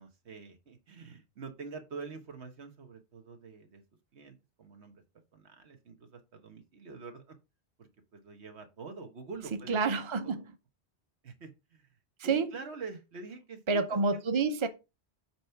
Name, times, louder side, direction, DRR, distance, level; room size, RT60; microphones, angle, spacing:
voice 1, 0.0-3.8 4.1-5.0 5.3-7.4 7.8-10.4 11.2-11.9 12.2-14.2, right 4 dB, 85° right, 1.5 m, -46 dB
voice 2, 9.7-10.4 12.2-12.5 13.7-14.7, right 4 dB, 30° right, 0.8 m, -28 dB
8.7 x 3.1 x 5.8 m
omnidirectional pair, 1.1 m